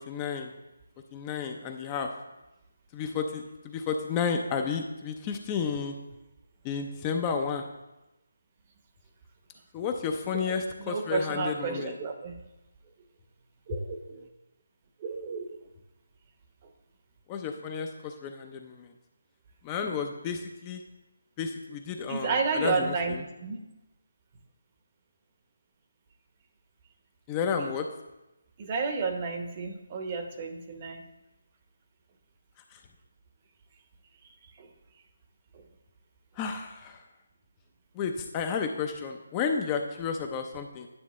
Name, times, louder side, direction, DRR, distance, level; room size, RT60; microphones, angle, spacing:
voice 1, 0.1-0.5 1.1-2.1 2.9-5.9 6.6-7.6 9.7-11.9 17.3-18.9 19.6-20.8 21.4-22.9 27.3-27.9 32.7-32.8 36.4-37.0 38.0-40.9, left 6 dB, 20° left, 4 dB, 0.5 m, -32 dB
voice 2, 10.3-12.4 13.7-14.3 15.0-15.6 22.1-23.1 23.4-23.6 27.6-27.7 28.6-31.1 34.6-34.7 35.5-35.6, right 4 dB, 30° right, 5 dB, 0.9 m, -32 dB
9.6 x 7.3 x 3.1 m, 0.99 s
figure-of-eight pair, 160°, 0 cm